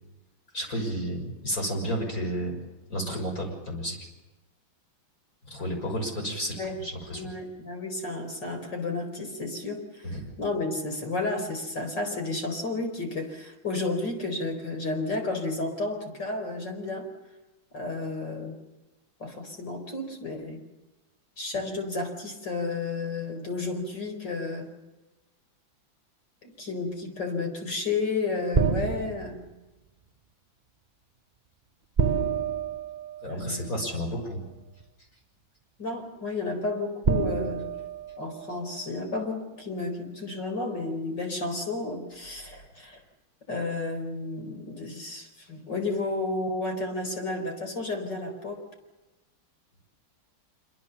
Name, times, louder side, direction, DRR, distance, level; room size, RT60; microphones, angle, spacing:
voice 1, 0.5-2.6 2.9-4.0 5.5-7.2 10.0-10.2 33.2-34.4, equal, 45° left, 1 dB, 6.7 m, -31 dB
voice 2, 7.1-17.1 17.7-18.6 19.2-20.6 21.4-24.7 26.4-29.4 33.3-33.7 35.8-37.7 38.2-43.0 43.5-48.6, left 3 dB, 60° left, 4 dB, 5.2 m, -32 dB
sound 1, 28.5-29.5 32.0-33.6 34.8-34.9 37.0-38.8, right 6 dB, 50° right, 0.5 m, -28 dB
26.0 x 24.5 x 7.1 m, 1.1 s
omnidirectional pair, 2.1 m